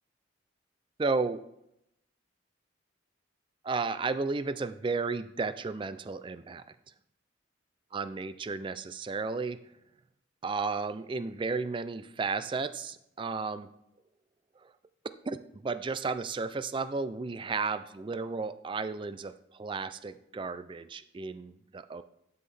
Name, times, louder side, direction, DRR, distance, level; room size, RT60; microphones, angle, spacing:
voice 1, 1.0-1.4 3.6-6.6 7.9-9.6 10.4-13.7 14.6-14.7 15.2-22.0, right 4 dB, 25° right, 13 dB, 0.3 m, -33 dB
12.0 x 5.7 x 3.3 m, 0.79 s
head